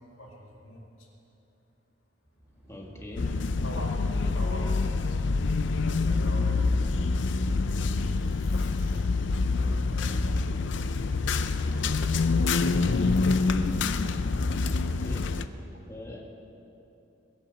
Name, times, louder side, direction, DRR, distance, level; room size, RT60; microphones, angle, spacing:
voice 1, 0.1-1.1 3.2-5.2 5.6-7.9 8.8-12.4, left 1 dB, 85° left, -2 dB, 2.4 m, -46 dB
sound 1, 2.2-7.1, right 1 dB, 5° right, 3.0 m, -48 dB
voice 2, 2.7-3.5 15.0-15.5 15.9-16.2, left 1 dB, 15° left, -2 dB, 1.8 m, -42 dB
sound 2, 3.2-15.5, left 3 dB, 60° left, 0.5 m, -26 dB
Tearing, 7.9-9.3 9.6-9.7 10.2-12.6 13.3-13.8, left 2 dB, 45° left, 2.9 m, -53 dB
20.5 x 7.2 x 7.3 m, 2.9 s
head